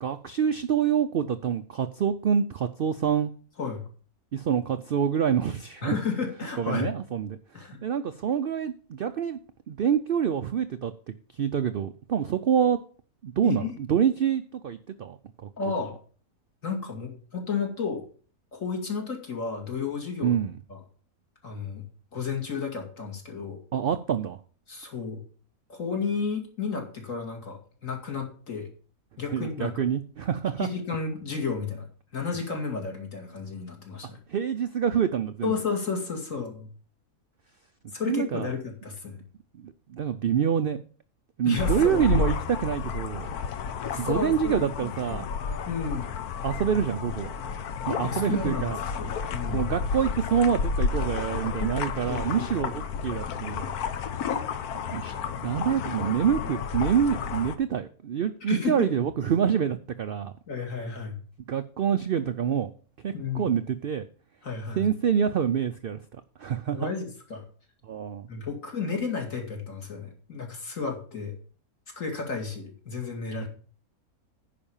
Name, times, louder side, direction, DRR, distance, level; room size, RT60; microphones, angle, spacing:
voice 1, 0.0-3.3 4.3-5.9 6.6-7.4 7.8-9.4 9.7-12.8 13.2-15.2 20.2-20.6 23.7-24.4 29.3-30.7 34.3-35.5 38.0-38.5 39.6-40.8 41.4-43.3 43.9-45.2 46.4-47.3 47.9-48.8 49.5-53.7 54.9-60.3 61.5-62.7 63.0-64.0 64.8-66.0 66.4-66.9 67.9-68.3, right 8 dB, 65° right, 10 dB, 0.5 m, -26 dB
voice 2, 5.8-6.9 7.5-7.8 13.4-13.7 15.6-16.0 16.6-18.0 18.5-20.3 20.7-20.8 21.4-21.8 22.1-23.6 24.7-25.2 25.7-28.7 29.2-29.8 30.6-31.9 32.1-34.2 35.4-36.7 37.9-39.2 41.4-42.0 43.9-45.2 45.7-46.1 48.0-49.7 52.1-52.8 58.5-58.9 60.5-61.2 63.1-63.6 64.4-64.9 66.7-67.4 68.3-71.4 72.0-73.5, left 5 dB, 60° left, 2 dB, 2.8 m, -32 dB
sound 1, 41.6-57.6, left 6 dB, 85° left, 1.3 m, -31 dB
10.0 x 5.1 x 7.1 m, 0.42 s
omnidirectional pair, 1.6 m